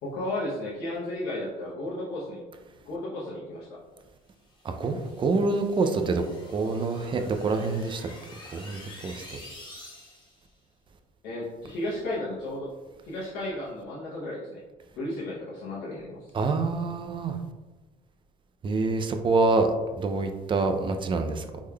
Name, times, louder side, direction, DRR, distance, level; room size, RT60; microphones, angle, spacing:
voice 1, 0.0-2.4 2.8-3.8 11.2-12.7 13.0-14.6 15.0-16.3, left 1 dB, 80° left, -7 dB, 0.8 m, -34 dB
sound 1, 4.5-10.4, left 2 dB, 25° left, 1.0 m, -48 dB
voice 2, 4.6-6.2 6.5-8.1 8.5-9.2 16.3-17.4 18.6-21.4, right 3 dB, 30° right, 6 dB, 0.4 m, -26 dB
3.5 x 3.2 x 2.2 m, 1.2 s
cardioid pair, 110°, 17 cm